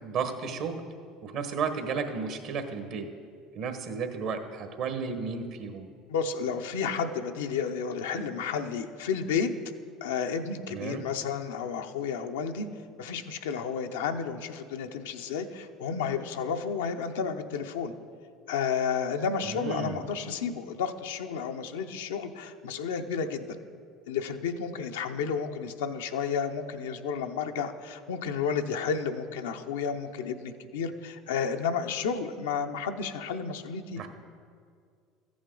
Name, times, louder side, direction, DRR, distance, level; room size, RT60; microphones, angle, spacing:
voice 1, 0.0-0.8 1.2-3.1 3.5-5.9 10.7-11.0 19.4-20.0 34.0-34.1, right 5 dB, 60° right, 7 dB, 1.2 m, -33 dB
voice 2, 6.1-9.5 10.0-12.7 13.0-17.9 18.5-23.6 24.1-34.0, left 6 dB, 85° left, 6 dB, 0.6 m, -31 dB
14.0 x 8.5 x 3.8 m, 2.2 s
hypercardioid pair, 80°, 0 cm